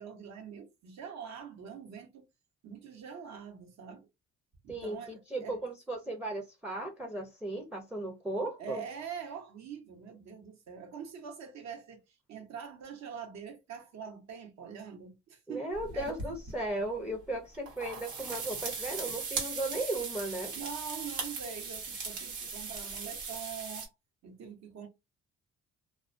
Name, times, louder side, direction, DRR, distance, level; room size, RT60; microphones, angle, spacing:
voice 1, 0.0-2.3 2.6-4.1 4.6-5.6 8.6-16.2 20.5-23.9 24.2-24.9, right 7 dB, 65° right, 0.9 m, -44 dB
voice 2, 4.7-8.8 15.5-20.6, right 2 dB, 5° right, 0.5 m, -36 dB
sound 1, 15.7-16.5 17.5-23.9, right 4 dB, 85° right, 1.1 m, -39 dB
2.3 x 2.2 x 2.5 m
cardioid pair, 90°, 30 cm